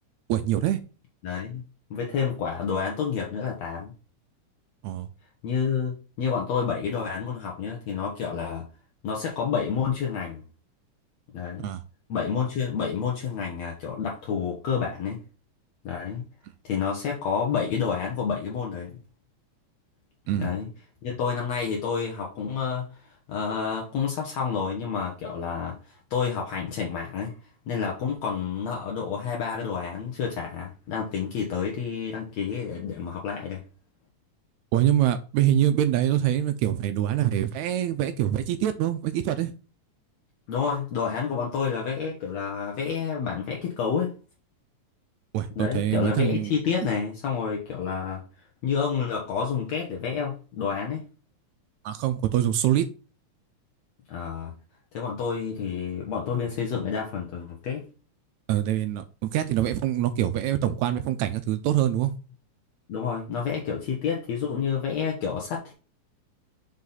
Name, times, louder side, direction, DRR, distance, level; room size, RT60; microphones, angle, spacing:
voice 1, 0.3-0.8 4.8-5.1 11.6-11.8 20.3-20.5 34.7-39.5 45.3-46.5 51.8-52.9 58.5-62.1, right 11 dB, 80° right, 1.9 m, -24 dB
voice 2, 1.2-1.6 1.9-3.9 5.4-8.7 9.0-10.4 11.3-11.7 12.1-15.2 15.8-16.2 16.6-18.9 20.4-20.7 21.0-22.9 23.3-27.4 27.7-33.6 40.5-44.1 45.6-48.2 48.6-51.0 54.1-54.5 54.9-57.8 62.9-65.7, left 6 dB, 65° left, 2.2 m, -29 dB
5.7 x 5.1 x 4.0 m
omnidirectional pair, 3.5 m